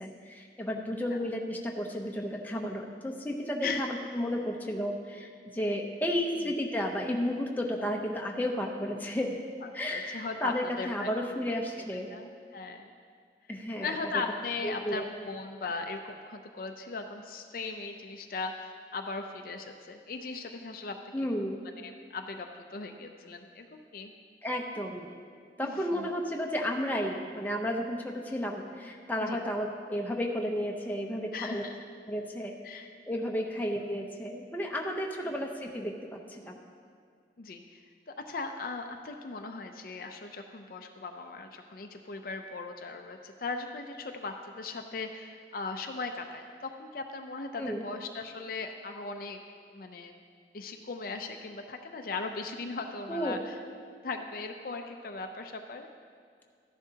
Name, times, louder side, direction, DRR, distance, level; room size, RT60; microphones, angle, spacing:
voice 1, 0.0-9.4 9.7-12.1 13.5-14.0 14.6-15.0 15.6-15.7 21.1-21.6 24.4-25.1 25.6-31.6 32.1-35.9 36.3-36.6 47.6-47.9 53.1-53.4, equal, 10° left, 0 dB, 0.7 m, -33 dB
voice 2, 9.6-11.3 11.9-12.9 13.8-21.1 21.8-24.1 25.6-26.1 29.2-29.4 31.3-31.8 32.6-32.9 37.4-49.4 49.7-50.2 50.5-53.5 54.0-55.9, left 3 dB, 50° left, 5 dB, 0.5 m, -38 dB
13.0 x 10.5 x 2.8 m, 2.1 s
head